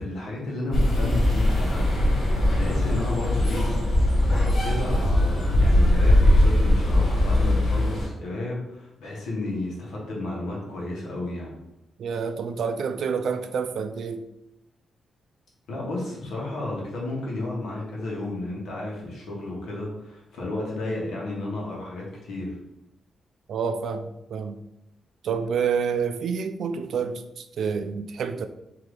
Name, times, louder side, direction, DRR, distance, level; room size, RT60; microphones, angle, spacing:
voice 1, 0.0-3.8 4.0-11.5 15.7-22.6, left 2 dB, 85° left, 1.2 m, -32 dB
sound 1, 0.7-8.1, left 1 dB, 50° left, 1.5 m, -20 dB
voice 2, 12.0-14.2 23.5-24.6 25.2-28.5, right 6 dB, 65° right, 0.3 m, -28 dB
3.8 x 2.8 x 3.2 m
wide cardioid pair, 160°, 0 cm